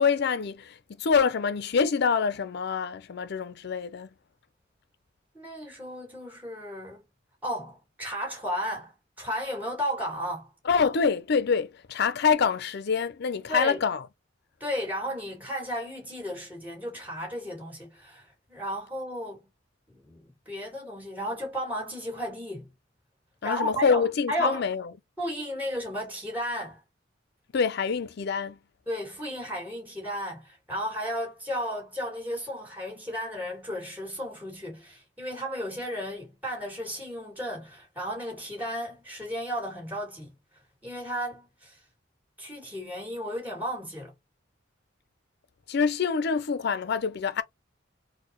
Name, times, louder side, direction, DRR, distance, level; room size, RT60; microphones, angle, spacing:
voice 1, 0.0-4.1 10.7-14.0 23.4-24.9 27.5-28.6 45.7-47.4, left 5 dB, 55° left, 0.5 m, -26 dB
voice 2, 5.3-7.1 7.4-10.5 13.5-13.9 14.6-19.5 19.9-22.7 23.4-24.6 25.2-26.8 28.9-40.3 40.8-41.8 42.4-44.1, equal, 10° right, 2.3 m, -34 dB
4.4 x 2.1 x 3.0 m
head